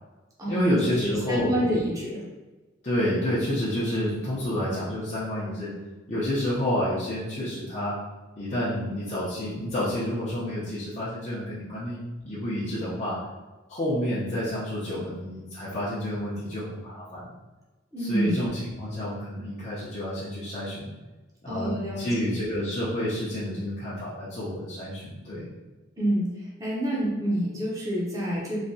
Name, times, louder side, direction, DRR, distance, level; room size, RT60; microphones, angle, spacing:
voice 1, 0.5-1.7 2.8-5.7 6.1-8.0 8.4-13.2 13.7-17.3 18.0-20.9 21.4-25.5, equal, 35° left, -11 dB, 0.7 m, -29 dB
voice 2, 1.0-2.2 17.9-18.3 21.5-22.1 26.0-26.3 26.6-28.6, right 1 dB, 15° right, -6 dB, 0.7 m, -27 dB
3.2 x 2.7 x 2.7 m, 1.2 s
head